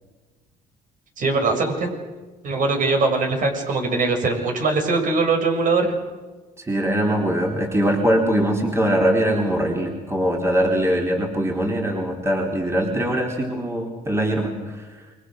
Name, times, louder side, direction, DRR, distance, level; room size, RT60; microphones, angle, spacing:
voice 1, 1.2-1.9 2.4-5.9, right 3 dB, 50° right, 3 dB, 7.1 m, -21 dB
voice 2, 6.7-14.5, right 1 dB, 15° right, 0 dB, 4.1 m, -22 dB
28.5 x 24.0 x 6.6 m, 1.3 s
cardioid pair, 110°, 17 cm